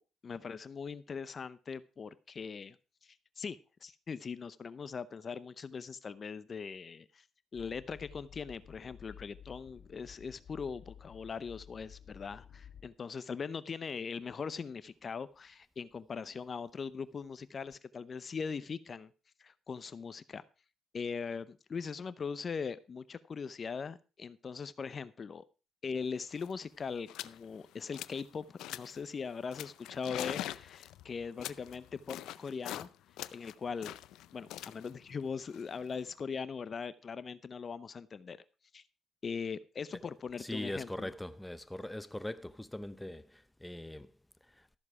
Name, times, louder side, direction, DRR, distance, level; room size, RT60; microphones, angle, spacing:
voice 1, 0.2-2.8 3.0-7.2 7.5-19.1 19.4-20.4 20.9-25.4 25.8-32.9 33.3-33.9 34.3-38.4 38.7-38.8 39.2-41.1, left 5 dB, 40° left, 0.7 m, -40 dB
Train, 7.5-12.9, left 8 dB, 65° left, 1.7 m, -53 dB
sound 1, 26.0-26.1 26.3-26.6 27.1-27.4 27.7-28.3 28.6-29.0 29.5-32.9 33.2-36.2, left 13 dB, 90° left, 0.5 m, -43 dB
voice 2, 40.4-44.1 44.5-44.7, left 1 dB, 10° left, 0.7 m, -41 dB
13.5 x 7.3 x 4.8 m
cardioid pair, 90°, 0 cm